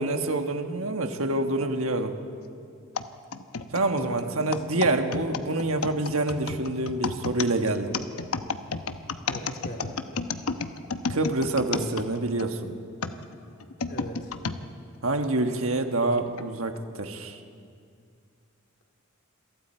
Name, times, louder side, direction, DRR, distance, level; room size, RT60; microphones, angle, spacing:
voice 1, 0.0-2.1 3.7-7.9 11.1-12.7 15.0-17.4, right 2 dB, 70° right, 6 dB, 1.5 m, -27 dB
sound 1, 3.0-12.5 13.0-14.6 15.2-15.3 16.2-16.4, left 4 dB, 85° left, 0.9 m, -32 dB
voice 2, 3.9-4.5 9.3-10.0 13.9-14.3, equal, 50° left, 1 dB, 3.6 m, -39 dB
27.5 x 23.0 x 4.5 m, 2.3 s
head